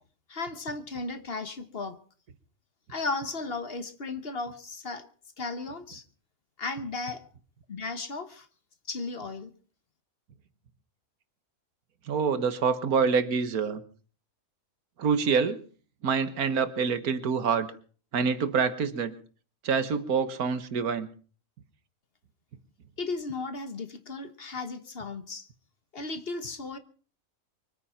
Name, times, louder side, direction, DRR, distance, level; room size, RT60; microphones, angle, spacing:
voice 1, 0.3-2.0 2.9-5.1 5.4-6.0 6.6-7.2 7.7-8.5 8.9-9.5 23.0-25.5 25.9-26.8, left 3 dB, 45° left, 1.3 m, -35 dB
voice 2, 12.1-13.8 15.0-15.6 16.0-17.7 18.1-19.1 19.6-21.1, right 5 dB, 85° right, 1.8 m, -26 dB
24.0 x 9.3 x 5.8 m
omnidirectional pair, 1.5 m